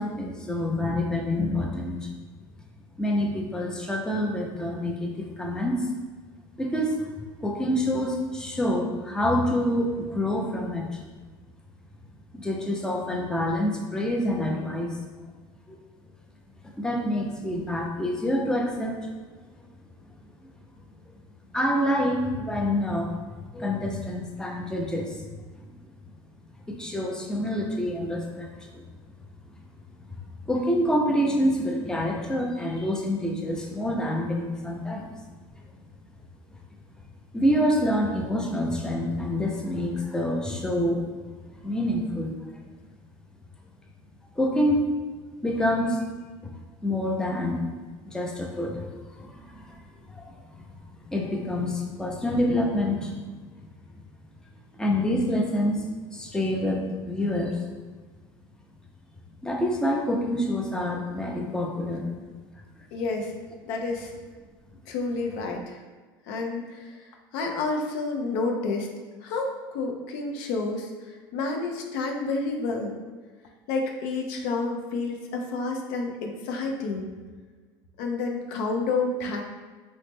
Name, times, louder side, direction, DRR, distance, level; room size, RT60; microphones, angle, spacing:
voice 1, 0.0-2.1 3.0-5.9 6.6-7.0 7.4-11.0 12.3-14.9 15.7-15.8 16.8-19.0 21.5-23.1 23.5-25.4 26.7-28.5 30.4-35.1 37.3-41.0 41.6-42.3 44.4-44.9 45.4-46.0 46.8-47.6 48.0-48.9 49.1-49.7 50.1-50.7 51.1-53.2 54.7-55.8 56.1-57.6 59.4-62.1, left 1 dB, 5° left, -1 dB, 0.5 m, -27 dB
voice 2, 62.9-63.3 63.7-64.1 64.9-65.8 66.3-67.0 67.3-68.9 69.2-72.9 73.7-77.1 78.0-79.4, left 3 dB, 75° left, 2 dB, 0.4 m, -29 dB
3.0 x 2.0 x 3.3 m, 1.4 s
supercardioid pair, 100°, 11 cm